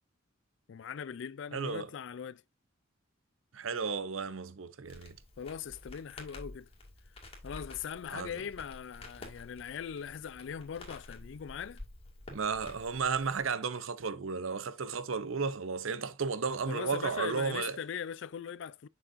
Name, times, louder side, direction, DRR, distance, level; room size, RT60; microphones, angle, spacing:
voice 1, 0.7-2.4 5.4-6.7 7.4-11.8 16.7-18.9, left 7 dB, 60° left, 0.3 m, -40 dB
voice 2, 1.5-1.9 3.5-5.1 8.1-8.4 12.3-17.8, right 5 dB, 75° right, 0.7 m, -33 dB
Crackle, 4.8-13.5, left 1 dB, 30° left, 2.2 m, -50 dB
6.8 x 6.3 x 2.6 m
head